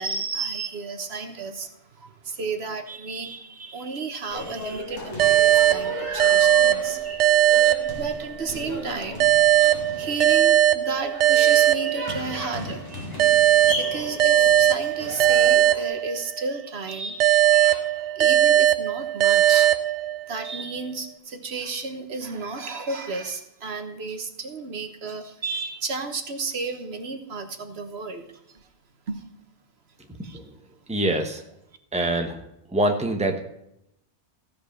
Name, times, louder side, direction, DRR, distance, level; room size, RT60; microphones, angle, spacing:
voice 1, 0.0-1.7 1.9-7.0 8.0-9.3 9.7-13.1 13.7-19.8 20.3-28.6 29.1-29.2 30.2-30.4, right 4 dB, 65° right, 7 dB, 1.4 m, -32 dB
sound 1, 4.3-15.8, left 1 dB, 20° left, 3.5 m, -35 dB
sound 2, 5.2-8.5 9.2-12.5 13.2-16.5 17.2-20.5, right 11 dB, 85° right, 0.9 m, -19 dB
voice 2, 30.9-31.4 31.9-32.4 32.7-33.4, right 1 dB, 5° right, 4 dB, 1.1 m, -24 dB
15.5 x 5.3 x 6.8 m, 0.79 s
omnidirectional pair, 1.1 m